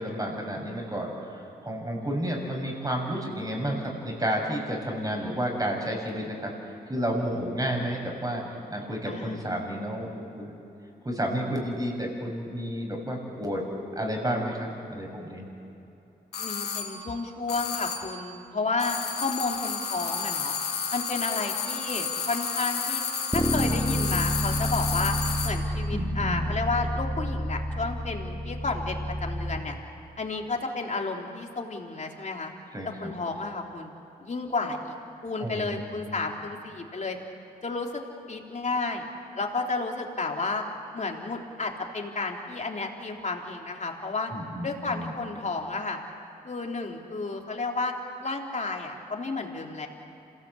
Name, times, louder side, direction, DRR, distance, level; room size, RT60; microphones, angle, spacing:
voice 1, 0.0-8.4 8.7-10.5 11.0-13.6 14.0-15.5 25.9-26.5 32.7-33.1 35.4-36.0 44.3-45.1, equal, 20° right, 0 dB, 7.1 m, -31 dB
voice 2, 9.1-9.4 16.4-20.5 20.9-23.0 23.3-25.2 25.4-29.8 30.2-32.5 32.8-33.9 34.2-34.9 35.2-37.2 37.6-38.0 38.3-39.1 39.3-40.6 40.9-44.3 44.6-46.0 46.4-47.9 48.2-49.9, left 3 dB, 45° left, 1 dB, 3.3 m, -32 dB
sound 1, 16.3-17.0 17.5-18.2 18.8-25.7, left 6 dB, 80° left, 2.3 m, -31 dB
Bass guitar, 23.3-29.6, equal, 5° left, 2.2 m, -29 dB
27.0 x 17.5 x 8.3 m, 2.9 s
cardioid pair, 55°, 17 cm